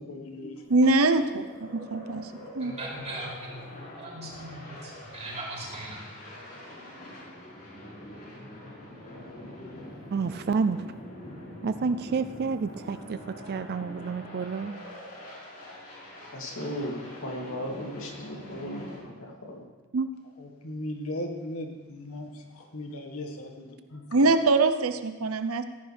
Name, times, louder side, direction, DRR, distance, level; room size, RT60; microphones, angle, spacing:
voice 1, 0.0-0.5 20.4-24.0, left 1 dB, 80° left, 3 dB, 1.8 m, -37 dB
sound 1, 0.6-19.0, left 1 dB, 40° left, 4.7 m, -44 dB
voice 2, 0.7-2.8 24.1-25.6, right 3 dB, 75° right, 10 dB, 0.8 m, -23 dB
voice 3, 2.6-6.0, right 1 dB, 30° right, -4 dB, 5.1 m, -39 dB
voice 4, 10.1-10.8 11.6-14.8 19.9-20.1, right 5 dB, 50° right, 12 dB, 0.4 m, -29 dB
voice 5, 16.3-19.6, equal, 65° left, -1 dB, 2.8 m, -36 dB
17.0 x 14.5 x 3.5 m, 1.3 s
head